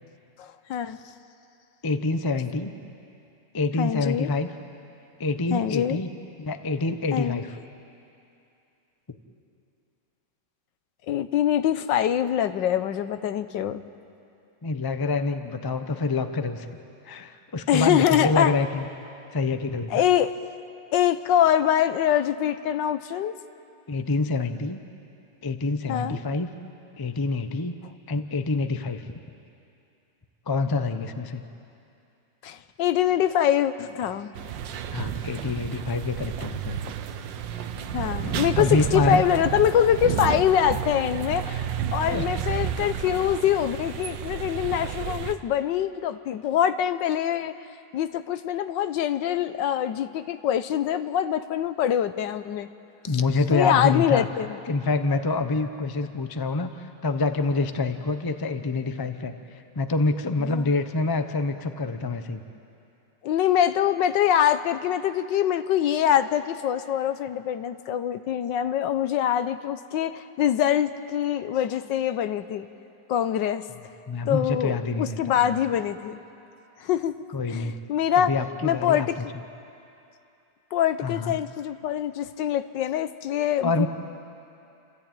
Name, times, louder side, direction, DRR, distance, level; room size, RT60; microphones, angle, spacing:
voice 1, 0.4-1.0 3.8-4.3 5.5-6.0 7.1-7.4 11.1-13.9 17.7-18.5 19.9-20.3 20.9-23.4 25.9-26.2 32.4-34.3 37.9-41.6 41.9-47.5 47.9-52.7 53.5-54.6 60.4-60.6 63.2-72.7 73.1-73.6 74.3-76.2 76.8-78.3 78.6-79.1 80.7-83.9, left 10 dB, 80° left, 11 dB, 1.4 m, -24 dB
voice 2, 1.8-2.7 3.5-4.5 5.2-6.1 6.4-7.5 14.6-16.7 17.1-18.8 19.3-19.9 23.9-24.8 25.4-26.5 27.0-27.8 28.1-29.0 30.5-31.4 34.9-36.8 38.6-39.2 42.1-42.3 53.1-54.3 54.7-62.4 74.1-75.6 77.3-77.8 78.2-79.1 81.0-81.4 83.6-83.9, left 3 dB, 30° left, 8 dB, 0.4 m, -26 dB
sound 1, 34.4-45.4, right 9 dB, 85° right, 1.5 m, -31 dB
29.5 x 14.0 x 9.0 m, 2.7 s
omnidirectional pair, 2.0 m